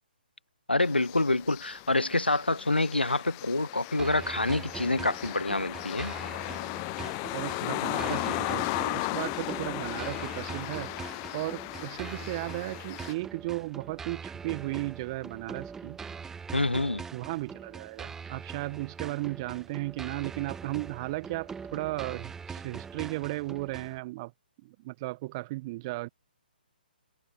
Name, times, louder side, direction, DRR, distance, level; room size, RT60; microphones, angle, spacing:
voice 1, 0.7-6.1 16.5-17.1, left 2 dB, 90° left, 0.5 m, -27 dB
sound 1, 0.8-13.1, left 34 dB, 25° left, 0.6 m, -36 dB
sound 2, 4.0-24.0, right 6 dB, 10° right, 1.5 m, -42 dB
voice 2, 7.3-16.0 17.1-24.3 24.6-26.1, right 21 dB, 30° right, 1.1 m, -35 dB
figure-of-eight pair, 130°, 5 cm